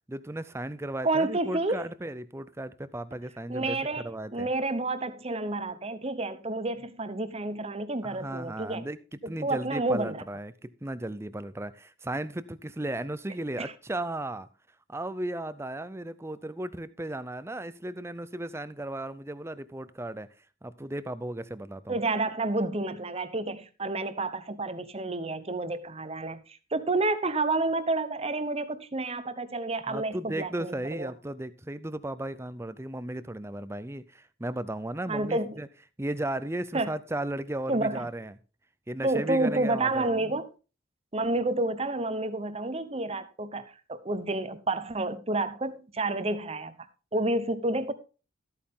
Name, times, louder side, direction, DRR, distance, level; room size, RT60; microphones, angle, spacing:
voice 1, 0.1-4.5 8.0-14.5 14.9-20.3 20.6-22.0 29.9-35.7 36.0-38.3 38.9-40.1, right 1 dB, 15° right, 0.5 m, -35 dB
voice 2, 1.0-1.8 3.5-8.9 9.2-10.2 13.6-13.7 21.9-26.4 26.7-31.1 35.1-35.6 36.7-36.9 37.7-38.0 39.0-40.5 41.1-46.7 47.1-47.9, right 2 dB, 30° right, 0.9 m, -29 dB
13.5 x 8.6 x 3.7 m
head